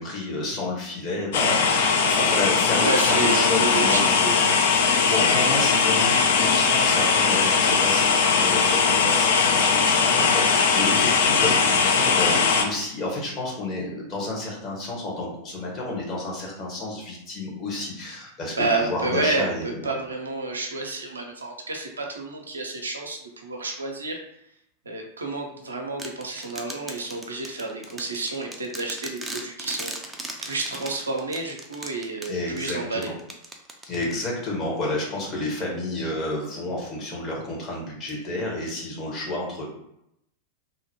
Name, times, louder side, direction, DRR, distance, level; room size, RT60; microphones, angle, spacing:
voice 1, 0.0-4.2 5.1-20.0 32.3-33.1 33.9-39.6, left 2 dB, 30° left, -3 dB, 1.0 m, -30 dB
sound 1, 1.3-12.6, left 5 dB, 55° left, 0.4 m, -20 dB
voice 2, 2.8-4.5 18.6-19.5 19.8-24.2 24.9-29.9 30.4-33.1, right 3 dB, 75° right, 2 dB, 0.5 m, -29 dB
sound 2, 26.0-34.5, right 2 dB, 10° right, 0.4 m, -38 dB
2.7 x 2.1 x 2.8 m, 0.78 s
figure-of-eight pair, 90°, 0 cm